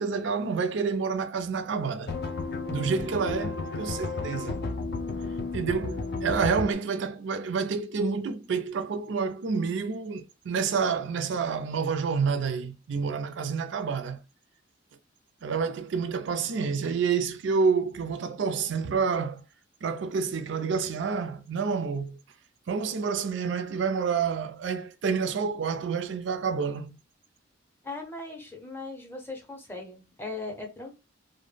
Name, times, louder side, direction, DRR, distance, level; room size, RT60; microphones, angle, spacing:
voice 1, 0.0-2.1 2.7-4.6 5.5-14.2 15.4-19.4 19.8-22.2 22.7-27.0, right 5 dB, 65° right, 0.4 m, -28 dB
sound 1, 2.1-6.7, left 3 dB, 55° left, 0.4 m, -32 dB
voice 2, 27.8-30.9, left 3 dB, 10° left, 0.6 m, -39 dB
2.1 x 2.1 x 3.2 m
head